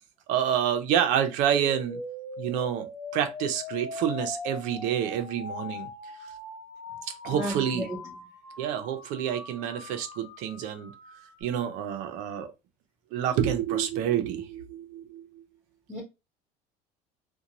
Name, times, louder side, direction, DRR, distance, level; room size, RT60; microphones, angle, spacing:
voice 1, 0.3-2.0 2.4-2.9 3.1-5.9 7.0-7.9 8.6-10.9 11.4-12.5 13.1-15.4, right 9 dB, 55° right, 0.5 m, -28 dB
sound 1, 1.4-11.4, left 2 dB, 40° left, 1.2 m, -41 dB
voice 2, 7.3-8.0 15.9-16.0, right 1 dB, 10° right, 0.9 m, -33 dB
2.6 x 2.2 x 2.9 m
cardioid pair, 170°, 15 cm